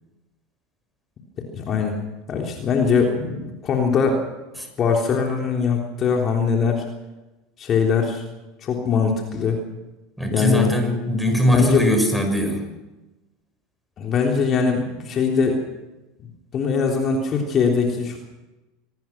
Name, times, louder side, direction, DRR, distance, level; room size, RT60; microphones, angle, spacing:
voice 1, 1.5-2.0 2.3-4.2 4.8-6.8 7.6-8.2 8.6-9.6 10.3-10.7 11.5-11.8 14.0-15.6 16.5-18.2, left 5 dB, 35° left, 1 dB, 3.5 m, -21 dB
voice 2, 10.2-12.6, equal, ahead, 5 dB, 6.2 m, -20 dB
25.5 x 19.0 x 6.1 m, 1.1 s
figure-of-eight pair, 80°, 0 cm